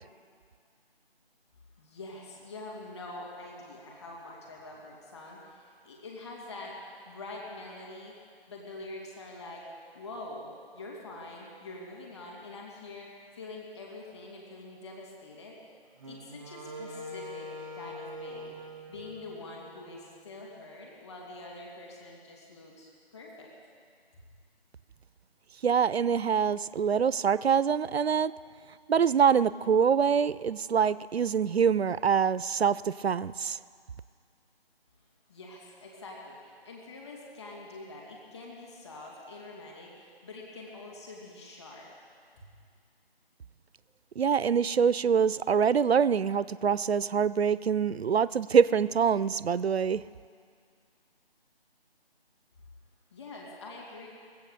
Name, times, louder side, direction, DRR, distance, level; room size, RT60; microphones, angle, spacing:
voice 1, 1.8-8.2 8.5-9.7 9.9-15.6 16.0-18.6 18.9-23.5 35.3-41.9 42.4-42.5 53.1-54.1, left 2 dB, 25° left, -2 dB, 2.6 m, -45 dB
Wind instrument woodwind instrument, 16.0-20.2, left 1 dB, ahead, 0.6 m, -43 dB
voice 2, 25.6-28.3 28.9-33.6 44.2-50.0, right 7 dB, 80° right, 18 dB, 0.5 m, -25 dB
22.0 x 8.3 x 6.7 m, 2.2 s
figure-of-eight pair, 160°, 31 cm